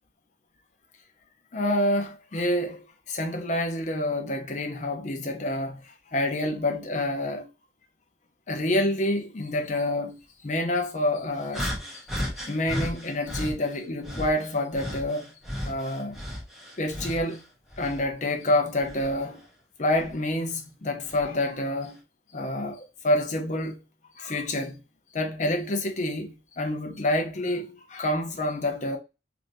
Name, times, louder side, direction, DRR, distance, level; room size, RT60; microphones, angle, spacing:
voice 1, 1.5-5.8 6.1-7.5 8.5-10.2 10.4-11.7 12.5-15.3 15.6-16.2 16.8-17.4 17.8-19.4 19.8-22.0 22.3-23.8 24.2-24.8 25.1-29.0, left 1 dB, 45° left, 0.6 m, -27 dB
sound 1, 11.5-13.5 14.0-17.3 17.7-19.2 19.9-20.1 21.0-21.2, equal, ahead, 0.9 m, -34 dB
3.4 x 2.6 x 2.6 m
head